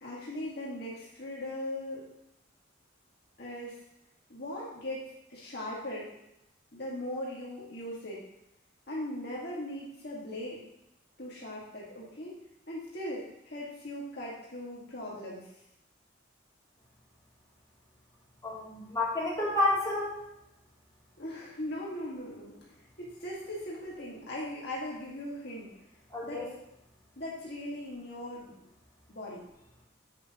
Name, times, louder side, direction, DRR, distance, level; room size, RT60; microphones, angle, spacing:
voice 1, 0.0-2.1 3.4-3.8 4.3-6.1 6.7-8.2 8.9-10.6 11.2-12.4 12.7-15.5 21.2-25.7 26.2-26.5 27.2-28.5 29.1-29.4, left 1 dB, 55° left, -5 dB, 2.0 m, -39 dB
voice 2, 18.4-20.1 26.1-26.4, left 2 dB, 20° left, -7 dB, 3.0 m, -29 dB
9.8 x 8.4 x 3.0 m, 0.84 s
head